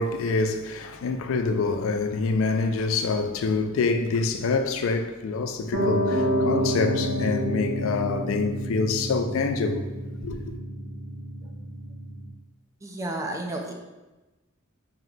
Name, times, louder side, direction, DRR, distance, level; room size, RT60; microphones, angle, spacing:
voice 1, 0.0-9.8 10.2-10.5, left 4 dB, 65° left, 0.3 m, -26 dB
Piano, 5.7-12.3, equal, 60° right, 0.8 m, -28 dB
voice 2, 12.8-13.7, right 1 dB, 15° right, 0.4 m, -31 dB
4.4 x 2.1 x 3.7 m
head